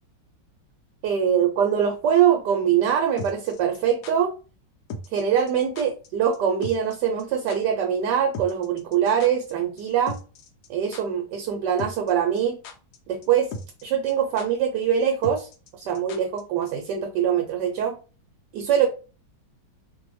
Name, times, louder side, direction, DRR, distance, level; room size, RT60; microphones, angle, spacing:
voice 1, 1.0-4.3 5.1-10.2 10.7-12.6 13.1-13.5 13.8-15.5 15.8-18.0 18.5-18.9, right 8 dB, 75° right, 3 dB, 1.2 m, -23 dB
sound 1, 3.2-4.1 4.9-5.2 5.5-5.6 5.8-6.1 6.3-6.4 6.6-6.9 7.2-7.3 7.5-7.6 8.3-9.5 9.8-9.9 10.1-10.7 10.9-11.0 11.8-12.1 12.4-13.0 13.2-13.3 13.5-13.8 14.1-14.2 14.4-14.5 15.2-16.4 16.7-16.8, left 2 dB, 70° left, 1.1 m, -36 dB
2.8 x 2.6 x 3.0 m, 0.34 s
omnidirectional pair, 2.0 m